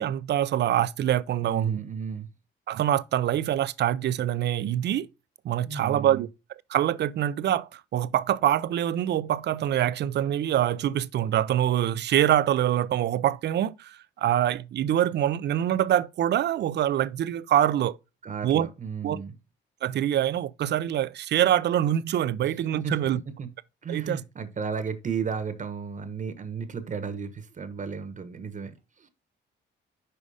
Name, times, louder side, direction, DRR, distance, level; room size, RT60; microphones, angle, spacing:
voice 1, 0.0-1.8 2.7-5.1 5.4-6.3 6.7-18.0 18.4-18.7 19.0-19.2 19.8-23.2 23.9-24.2, right 11 dB, 60° right, 0.5 m, -25 dB
voice 2, 1.4-2.3 5.7-6.2 18.2-19.3 22.8-23.0 23.4-23.5 23.8-29.1, right 6 dB, 40° right, 1.1 m, -34 dB
5.6 x 5.0 x 4.9 m
cardioid pair, 90°, 20 cm